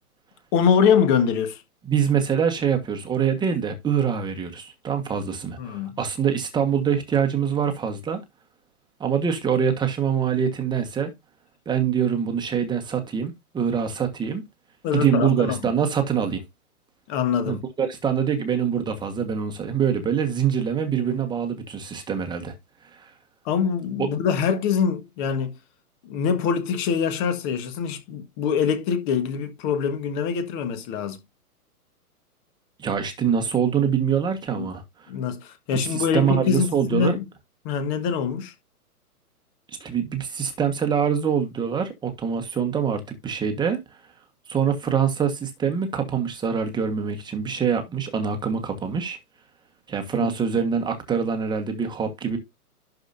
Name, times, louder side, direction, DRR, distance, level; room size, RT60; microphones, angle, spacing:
voice 1, 0.5-1.6 5.6-6.0 14.8-15.7 17.1-17.6 23.4-25.5 26.0-31.2 34.5-34.7 35.1-37.2 37.6-38.5 50.2-50.3, left 7 dB, 30° left, 1.7 m, -24 dB
voice 2, 1.9-8.2 9.0-11.1 11.6-14.4 14.9-16.4 17.4-22.5 23.0-23.1 24.0-24.1 32.8-34.8 35.7-37.2 39.8-43.8 44.5-49.2 49.9-52.4, right 7 dB, 10° right, 1.4 m, -24 dB
11.5 x 5.0 x 2.7 m
hypercardioid pair, 130°, 46 cm